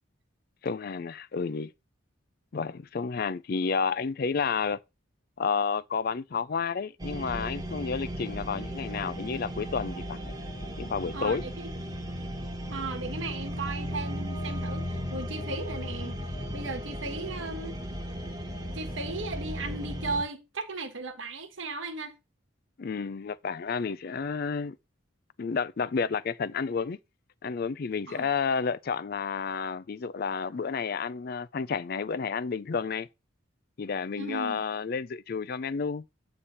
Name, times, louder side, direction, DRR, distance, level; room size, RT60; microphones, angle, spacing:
voice 1, 0.6-1.7 2.5-4.8 5.4-10.2 10.8-11.5 22.8-24.8 25.4-27.0 27.4-33.1 33.8-36.0, left 5 dB, 45° left, 0.4 m, -31 dB
sound 1, 7.0-20.2, equal, 20° right, 1.2 m, -36 dB
voice 2, 11.1-11.7 12.7-16.2 16.5-17.8 18.7-22.1 28.1-28.3 34.2-34.6, right 3 dB, 70° right, 1.3 m, -36 dB
8.6 x 3.3 x 5.5 m
head